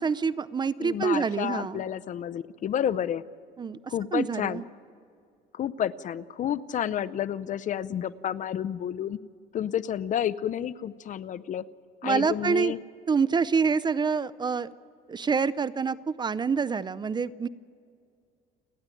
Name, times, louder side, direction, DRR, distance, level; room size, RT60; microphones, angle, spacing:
voice 1, 0.0-1.8 3.6-4.6 12.0-12.7 13.1-14.7 15.1-17.5, right 5 dB, 25° right, 18 dB, 0.5 m, -26 dB
voice 2, 0.8-3.2 3.9-4.6 5.5-9.2 9.5-11.6 12.0-12.8, left 10 dB, 50° left, 16 dB, 0.6 m, -30 dB
29.5 x 10.5 x 9.1 m, 2.2 s
cardioid pair, 110°, 17 cm